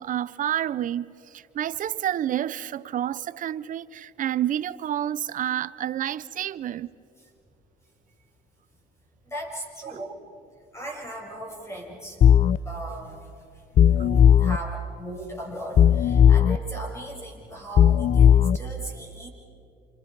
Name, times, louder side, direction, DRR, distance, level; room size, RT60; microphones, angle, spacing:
voice 1, 0.0-6.9 9.8-10.1, right 11 dB, 50° right, 0.6 m, -29 dB
voice 2, 9.3-10.1 10.7-12.2 12.6-13.2 14.0-19.3, right 1 dB, 15° left, 7.3 m, -37 dB
sound 1, 12.2-12.6 13.8-14.6 15.8-16.6 17.8-18.6, left 9 dB, 45° left, 0.5 m, -16 dB
30.0 x 28.0 x 5.4 m
cardioid pair, 110°, 17 cm